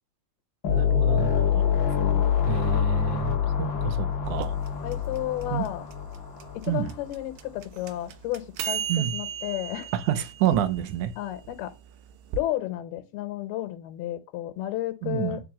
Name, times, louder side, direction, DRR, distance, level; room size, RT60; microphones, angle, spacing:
sound 1, 0.6-7.1, left 8 dB, 45° left, 1.7 m, -26 dB
voice 1, 0.7-1.7 2.5-4.6 5.5-5.6 6.7-6.9 8.9-9.1 9.9-11.1 15.0-15.4, right 11 dB, 60° right, 2.4 m, -28 dB
voice 2, 2.0-2.3 3.7-3.8 4.8-5.9 6.5-9.9 11.2-11.7 12.4-15.4, left 14 dB, 75° left, 3.1 m, -32 dB
sound 2, 4.2-12.4, right 8 dB, 85° right, 3.0 m, -36 dB
9.8 x 4.8 x 7.2 m
omnidirectional pair, 4.6 m